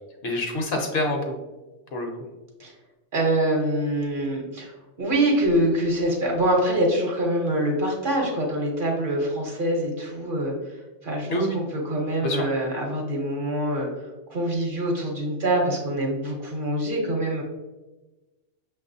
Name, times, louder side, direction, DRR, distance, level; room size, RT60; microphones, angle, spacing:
voice 1, 0.2-1.3 1.9-2.1 11.3-11.6 12.2-12.4, left 1 dB, 65° left, 2 dB, 0.8 m, -26 dB
voice 2, 3.1-4.7 5.0-10.5 11.0-13.9 14.3-17.4, right 1 dB, 50° right, 0 dB, 0.9 m, -25 dB
6.1 x 2.4 x 2.6 m, 1.1 s
omnidirectional pair, 1.2 m